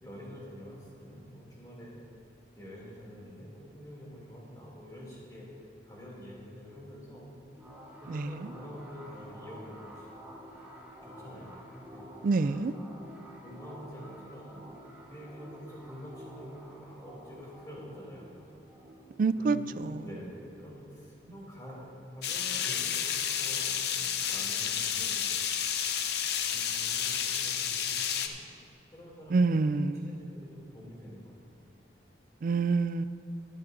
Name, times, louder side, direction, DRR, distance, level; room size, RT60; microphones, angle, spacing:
voice 1, 0.0-1.9 2.5-7.3 8.0-10.1 11.0-11.5 11.8-12.4 13.4-14.7 15.1-18.3 19.4-25.3 26.2-28.4 28.9-31.4, equal, 20° left, -5 dB, 2.8 m, -47 dB
sound 1, 7.6-20.8, equal, 10° right, 1.3 m, -50 dB
voice 2, 8.1-8.5 12.2-12.7 19.2-20.1 29.3-30.2 32.4-33.0, right 4 dB, 45° right, 13 dB, 0.3 m, -27 dB
sound 2, 22.2-28.3, left 8 dB, 60° left, 0.6 m, -31 dB
20.5 x 8.4 x 2.7 m, 2.6 s
head